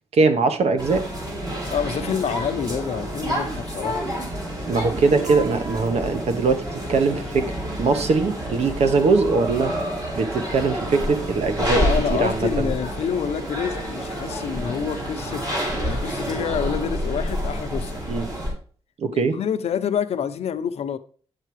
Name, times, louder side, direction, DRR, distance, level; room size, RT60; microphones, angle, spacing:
voice 1, 0.1-1.1 4.7-6.6 6.9-7.5 7.8-9.7 10.2-12.7 18.1-18.3 19.0-19.4, right 4 dB, 80° right, 1.2 m, -21 dB
sound 1, 0.8-18.5, equal, 35° right, 4.1 m, -28 dB
voice 2, 1.7-4.1 11.6-15.4 15.7-18.0 19.1-21.0, left 8 dB, 80° left, 0.8 m, -27 dB
8.9 x 7.5 x 3.1 m
wide cardioid pair, 130°, 11 cm